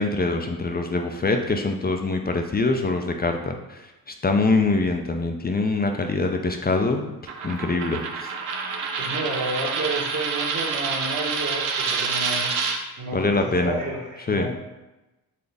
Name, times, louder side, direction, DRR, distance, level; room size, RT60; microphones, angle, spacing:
voice 1, 0.0-7.1 7.4-8.3 13.1-13.8 14.3-14.5, left 3 dB, 20° left, 4 dB, 0.6 m, -24 dB
Coin (dropping), 7.3-12.8, right 5 dB, 70° right, 0.8 m, -27 dB
voice 2, 9.0-14.5, right 2 dB, 40° right, -2 dB, 1.5 m, -31 dB
4.1 x 3.7 x 3.4 m, 1.0 s
hypercardioid pair, 50°, 44 cm